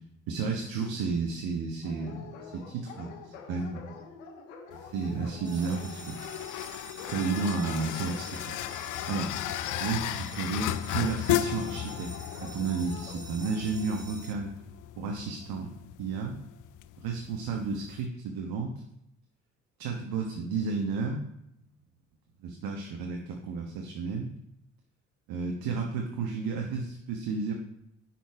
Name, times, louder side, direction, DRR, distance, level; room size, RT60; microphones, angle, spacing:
voice 1, 0.3-3.9 4.7-6.2 7.1-8.5 9.1-9.3 9.8-12.1 12.4-14.5 15.0-15.7 16.0-16.3 17.0-18.7 19.8-21.2 22.4-24.3 25.3-27.5, right 4 dB, 70° right, 1 dB, 1.2 m, -32 dB
Dog, 1.8-14.0, left 6 dB, 85° left, 1.1 m, -47 dB
sound 1, 4.7-18.1, left 12 dB, 55° left, 0.5 m, -35 dB
sound 2, 5.4-14.3, right 1 dB, 10° right, 1.3 m, -47 dB
10.5 x 4.5 x 4.7 m, 0.78 s
hypercardioid pair, 45°, 37 cm